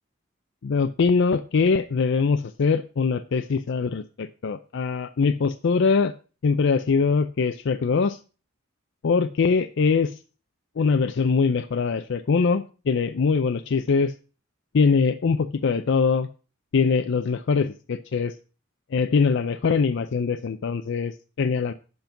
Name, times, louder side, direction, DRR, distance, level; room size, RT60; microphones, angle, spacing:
voice 1, 0.6-6.1 6.4-8.2 9.0-10.2 10.8-14.1 14.7-16.3 16.7-18.3 18.9-21.7, left 5 dB, 65° left, 9 dB, 0.4 m, -22 dB
8.0 x 5.3 x 5.8 m, 0.35 s
head